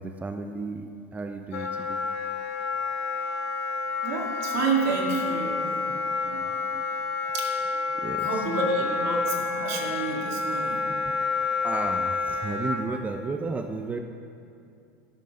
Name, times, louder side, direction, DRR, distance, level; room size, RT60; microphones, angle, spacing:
voice 1, 0.0-2.0 5.9-6.0 7.9-8.5 8.8-9.0 10.9-11.0 11.6-14.0, right 3 dB, 20° right, 6 dB, 0.6 m, -33 dB
Wind instrument woodwind instrument, 1.5-12.8, left 4 dB, 80° left, 1.3 m, -29 dB
voice 2, 4.0-5.8 6.2-6.5 7.3-7.5 8.2-10.8, right 4 dB, 70° right, -1 dB, 2.2 m, -29 dB
11.0 x 5.4 x 6.4 m, 2.5 s
hypercardioid pair, 95°, 8 cm